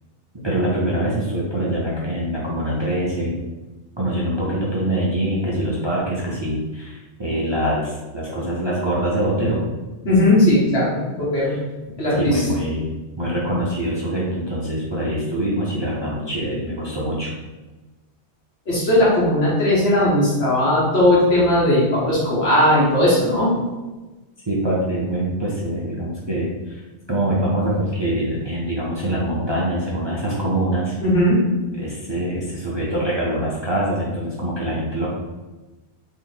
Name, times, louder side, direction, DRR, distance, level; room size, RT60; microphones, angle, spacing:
voice 1, 0.4-3.4 4.0-9.7 11.5-11.6 12.2-12.9 13.2-17.3 24.5-26.8 27.1-30.9 31.8-35.1, right 1 dB, 35° right, -6 dB, 0.5 m, -24 dB
voice 2, 10.0-11.5 12.0-12.4 18.7-23.5 31.0-31.4, left 1 dB, 70° left, -7 dB, 1.6 m, -17 dB
2.9 x 2.7 x 3.9 m, 1.2 s
omnidirectional pair, 1.1 m